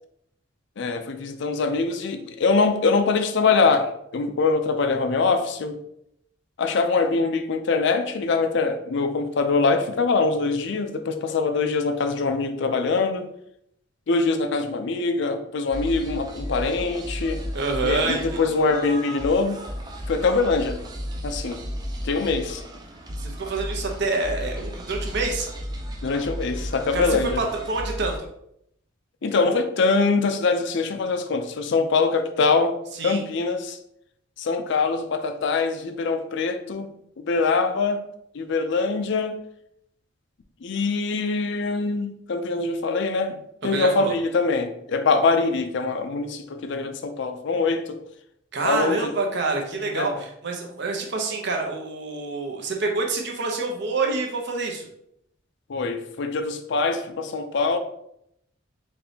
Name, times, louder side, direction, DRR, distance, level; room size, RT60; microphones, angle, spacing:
voice 1, 0.8-5.8 6.6-13.3 14.1-17.4 17.8-19.6 20.1-20.8 21.2-21.6 22.0-22.6 26.0-27.4 29.2-33.8 34.4-36.9 37.2-38.1 38.3-39.4 40.6-43.4 43.6-48.0 48.6-49.1 49.9-50.2 55.7-57.8, left 4 dB, 60° left, 0.4 m, -23 dB
sound 1, 15.7-28.2, equal, 20° right, 0.4 m, -34 dB
voice 2, 17.5-18.4 23.2-25.5 26.9-28.3 29.4-29.6 33.0-33.2 43.6-44.1 48.5-54.9, right 3 dB, 60° right, 0.8 m, -27 dB
4.3 x 3.2 x 2.7 m
head